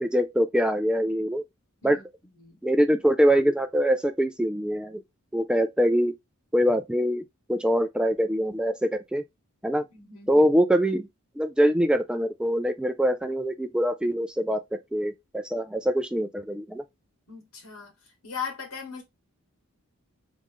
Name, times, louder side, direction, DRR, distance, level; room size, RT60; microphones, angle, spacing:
voice 1, 0.0-1.4 1.8-2.0 2.6-5.0 5.3-6.1 6.5-7.2 7.5-9.2 9.6-9.8 10.3-11.1 11.4-14.6 14.9-16.8, equal, 5° right, 0.3 m, -24 dB
voice 2, 9.9-10.5 17.3-17.9 18.2-19.0, left 6 dB, 90° left, 2.2 m, -38 dB
3.8 x 3.1 x 3.6 m
head